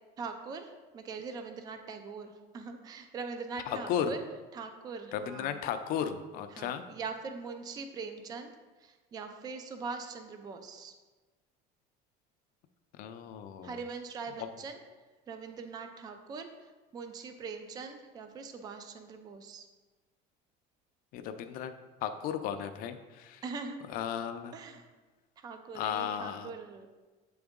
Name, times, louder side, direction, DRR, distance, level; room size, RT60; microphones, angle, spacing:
voice 1, 0.2-4.3 4.5-5.6 6.5-8.5 8.8-10.9 13.6-14.8 15.3-16.5 16.9-19.6 23.4-23.8 24.5-24.9 25.4-26.9, right 4 dB, 20° right, 7 dB, 0.4 m, -42 dB
voice 2, 3.7-4.1 5.1-6.8 13.0-13.8 14.4-14.5 21.1-21.7 22.0-23.4 23.9-24.5 25.7-26.5, left 9 dB, 50° left, 9 dB, 0.5 m, -35 dB
7.9 x 3.9 x 3.6 m, 1.3 s
cardioid pair, 165°, 19 cm